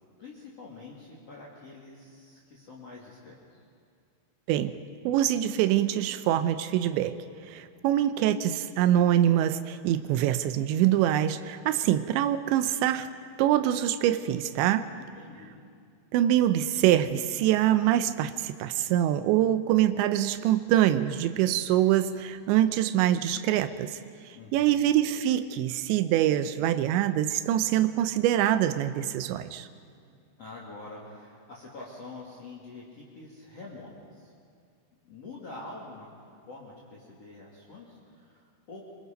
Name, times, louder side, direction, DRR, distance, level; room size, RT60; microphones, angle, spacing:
voice 1, 0.2-3.6 14.9-15.5 24.3-24.9 30.4-34.3 35.1-38.9, left 3 dB, 40° left, -3 dB, 2.7 m, -46 dB
voice 2, 5.1-7.2 7.5-13.1 13.4-14.9 16.1-24.0 24.5-29.7, right 12 dB, 80° right, 11 dB, 2.8 m, -24 dB
25.0 x 24.0 x 5.2 m, 2.3 s
omnidirectional pair, 5.5 m